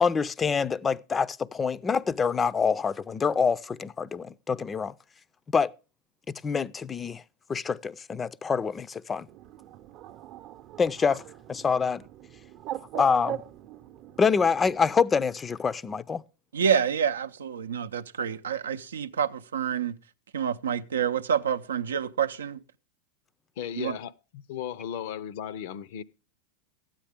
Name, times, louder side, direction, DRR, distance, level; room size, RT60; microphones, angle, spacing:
voice 1, 0.0-4.9 5.5-5.7 6.3-7.2 7.5-9.3 10.8-11.2 11.5-12.0 13.0-13.4 14.2-16.2, left 5 dB, 20° left, 0.4 m, -26 dB
Bird, 9.3-14.8, right 10 dB, 50° right, 0.7 m, -41 dB
voice 2, 16.5-20.0 20.3-22.6 23.8-24.0, right 7 dB, 90° right, 0.5 m, -28 dB
voice 3, 23.6-26.0, left 9 dB, 65° left, 0.5 m, -36 dB
12.5 x 8.9 x 3.5 m
hypercardioid pair, 105°, 0 cm